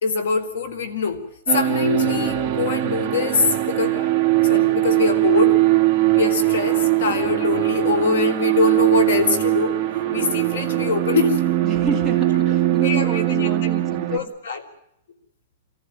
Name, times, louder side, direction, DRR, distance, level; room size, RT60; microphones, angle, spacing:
voice 1, 0.0-4.1 4.4-5.6 6.1-9.8 10.1-11.4 12.8-13.5 14.1-14.6, left 4 dB, 80° left, 11 dB, 4.5 m, -23 dB
sound 1, 1.5-14.2, right 15 dB, 15° right, 2.0 m, -20 dB
voice 2, 11.6-14.2, right 5 dB, 5° left, 2 dB, 2.5 m, -29 dB
27.5 x 15.0 x 9.1 m, 0.77 s
supercardioid pair, 175°, 0 cm